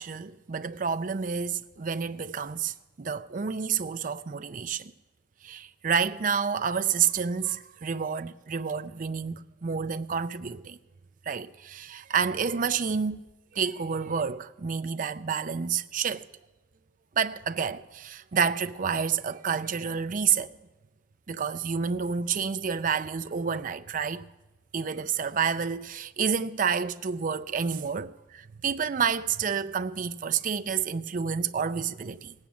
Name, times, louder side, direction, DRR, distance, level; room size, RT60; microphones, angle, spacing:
voice 1, 0.0-4.9 5.4-10.8 11.3-13.2 13.5-16.3 17.2-20.5 21.3-24.2 24.7-32.3, right 6 dB, 45° right, 0.5 m, -29 dB
18.0 x 8.8 x 7.4 m
head